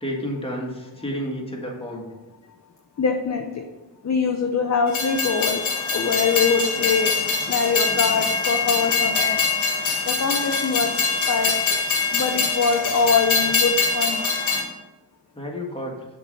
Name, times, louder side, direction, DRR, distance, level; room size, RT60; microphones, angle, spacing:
voice 1, 0.0-2.1 15.3-15.9, equal, 10° left, -1 dB, 1.7 m, -30 dB
voice 2, 3.0-3.6 4.0-5.6 5.9-7.1 7.5-9.4 10.1-10.9 11.3-11.7 12.1-14.2, left 5 dB, 35° left, 3 dB, 0.7 m, -23 dB
Train, 4.9-14.6, left 5 dB, 80° left, 1.6 m, -23 dB
7.0 x 4.0 x 5.4 m, 1.1 s
cardioid pair, 75°, 48 cm